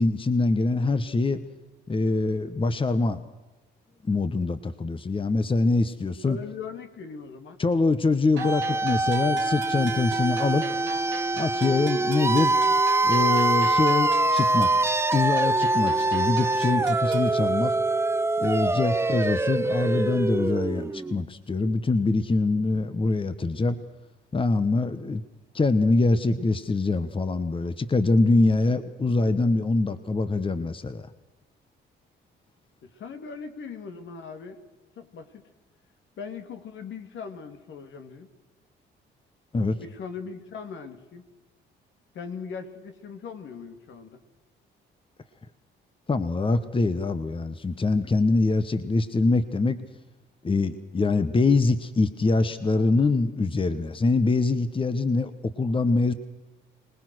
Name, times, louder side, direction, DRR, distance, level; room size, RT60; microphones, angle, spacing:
voice 1, 0.0-1.4 1.9-3.2 4.0-6.4 7.6-10.7 11.3-12.6 13.0-14.7 15.1-17.8 18.4-23.8 24.3-25.2 25.5-31.1 39.5-39.8 46.1-49.8 50.4-56.1, left 3 dB, 25° left, 12 dB, 1.3 m, -24 dB
voice 2, 6.3-7.6 32.8-34.6 35.0-35.4 36.2-38.3 39.8-41.2 42.1-44.2, left 5 dB, 70° left, 7 dB, 2.8 m, -39 dB
sound 1, 8.4-21.2, right 2 dB, 15° right, 0.6 m, -24 dB
sound 2, 8.4-17.4, right 9 dB, 75° right, 1.8 m, -41 dB
25.0 x 19.5 x 6.4 m, 1.1 s
cardioid pair, 90°, 20 cm